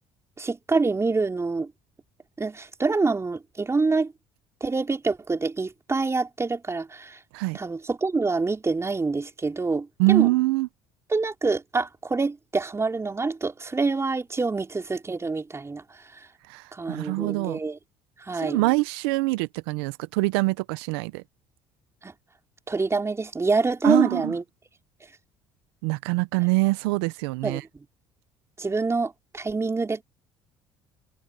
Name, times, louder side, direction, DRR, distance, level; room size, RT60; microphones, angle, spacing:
voice 1, 0.4-1.7 2.4-4.1 4.6-7.2 7.5-10.3 11.1-16.2 16.7-17.8 18.2-18.6 22.0-22.1 22.7-24.4 27.4-27.8 28.6-30.0, right 3 dB, 20° right, 4.5 m, -26 dB
voice 2, 10.0-10.7 16.5-17.6 18.3-21.2 23.8-24.3 25.8-27.6, right 21 dB, 90° right, 0.7 m, -24 dB
supercardioid pair, 85°, 13 cm